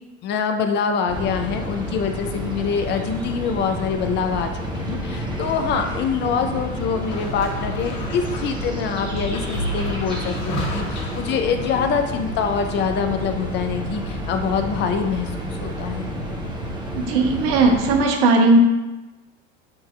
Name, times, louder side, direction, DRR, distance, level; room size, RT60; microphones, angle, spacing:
voice 1, 0.2-16.1, left 6 dB, 30° left, 6 dB, 0.4 m, -25 dB
sound 1, 1.1-18.0, equal, 10° right, 0.7 m, -30 dB
sound 2, 7.0-12.1, equal, 55° left, 1.5 m, -32 dB
voice 2, 16.9-18.6, right 3 dB, 55° right, 3 dB, 0.8 m, -17 dB
6.8 x 2.7 x 2.2 m, 1.1 s
hypercardioid pair, 85°, 38 cm